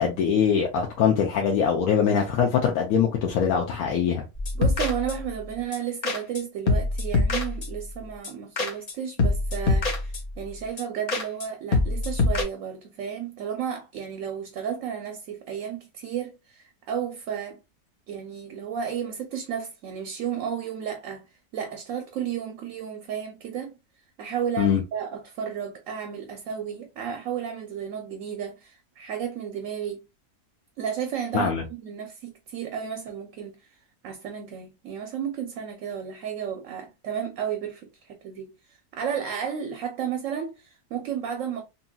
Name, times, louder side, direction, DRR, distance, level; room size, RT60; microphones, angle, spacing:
voice 1, 0.0-4.3 24.6-24.8 31.3-31.6, left 7 dB, 70° left, 1.0 m, -22 dB
sound 1, 4.3-5.4 5.7-5.8 6.0-6.4 6.7-7.9 8.2-8.9 9.2-10.4 10.8-10.9 11.1-11.5 11.7-12.4, left 3 dB, 90° left, 0.3 m, -25 dB
voice 2, 4.5-17.6 18.1-21.2 21.5-23.8 24.2-30.0 30.8-31.5 31.8-33.5 34.0-38.5 38.9-41.6, right 8 dB, 70° right, 0.8 m, -33 dB
2.9 x 2.7 x 2.2 m
omnidirectional pair, 1.6 m